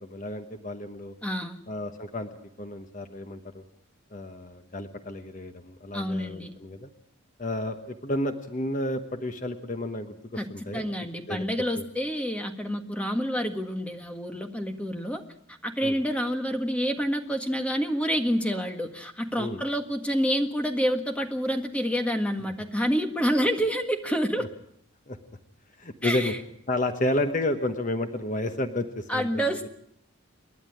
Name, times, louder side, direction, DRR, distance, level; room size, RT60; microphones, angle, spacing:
voice 1, 0.1-1.1 1.7-2.3 2.6-3.6 4.1-6.9 7.4-10.1 10.5-10.8 11.3-11.5 11.7-11.8 15.8-15.9 19.4-19.6 23.4-23.5 24.4-24.5 25.1-25.2 25.8-26.3 26.7-29.7, left 1 dB, 35° left, 7 dB, 1.2 m, -31 dB
voice 2, 1.2-1.6 5.9-6.5 10.4-15.2 15.6-24.5 26.0-26.4 29.1-29.7, equal, 5° left, 5 dB, 1.7 m, -28 dB
28.5 x 11.0 x 9.9 m, 0.73 s
head